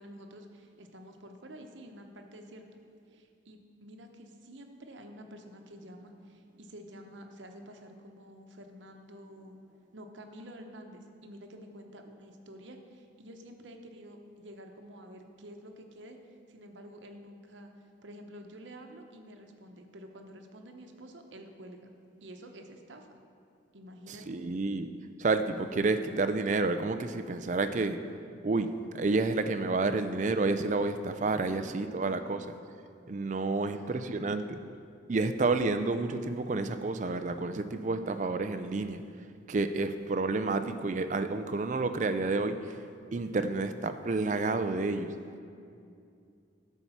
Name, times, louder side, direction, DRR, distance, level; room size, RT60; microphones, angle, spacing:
voice 1, 0.0-2.6 3.1-9.6 9.9-16.2 16.5-17.7 18.0-21.8 22.2-23.1 23.7-24.4 31.4-32.3 33.3-34.2, equal, 80° right, 4 dB, 0.9 m, -49 dB
voice 2, 24.1-24.9 25.2-28.0 28.4-32.4 33.1-34.6 35.1-39.0 39.5-42.8 43.1-45.1, right 3 dB, 40° right, 9 dB, 0.4 m, -30 dB
12.0 x 4.6 x 7.1 m, 2.4 s
head